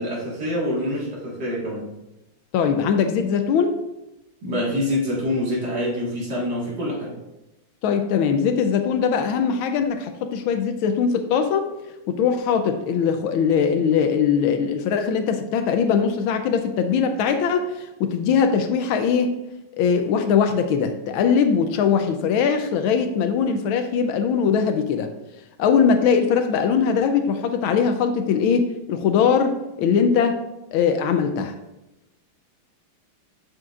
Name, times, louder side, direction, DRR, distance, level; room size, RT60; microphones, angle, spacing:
voice 1, 0.0-1.8 4.4-7.1, left 1 dB, 50° right, -4 dB, 2.3 m, -26 dB
voice 2, 2.5-3.8 7.8-11.7 12.1-19.4 19.8-25.1 25.6-30.4 30.7-31.5, left 6 dB, 80° left, 7 dB, 1.4 m, -21 dB
7.6 x 7.4 x 2.4 m, 0.93 s
omnidirectional pair, 2.3 m